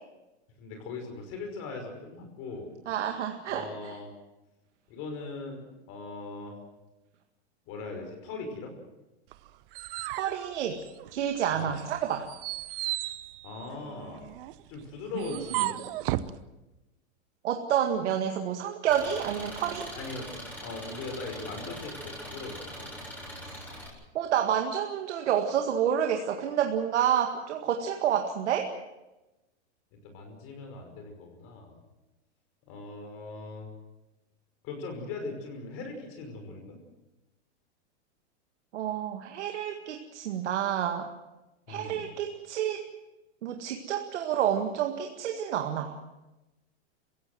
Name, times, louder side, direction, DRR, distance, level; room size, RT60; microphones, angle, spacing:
voice 1, 0.6-2.7 3.5-4.1 4.9-6.6 7.7-8.7 11.5-11.8 13.4-14.3 14.7-15.8 20.0-20.3 20.6-22.9 30.0-31.8 32.7-33.7 34.6-36.8 41.7-42.0, left 3 dB, 40° left, 4 dB, 5.5 m, -40 dB
voice 2, 2.9-4.0 10.2-10.8 11.1-12.3 15.1-15.4 17.4-19.9 24.1-28.7 38.7-41.1 41.7-42.9 43.4-46.0, right 9 dB, 75° right, 4 dB, 2.0 m, -29 dB
sound 1, 9.3-11.3 11.7-16.4, right 17 dB, 50° right, 1.1 m, -35 dB
Engine, 18.9-23.9, equal, 5° left, 7.6 m, -42 dB
27.0 x 16.5 x 7.7 m, 1.0 s
supercardioid pair, 145°, 35 cm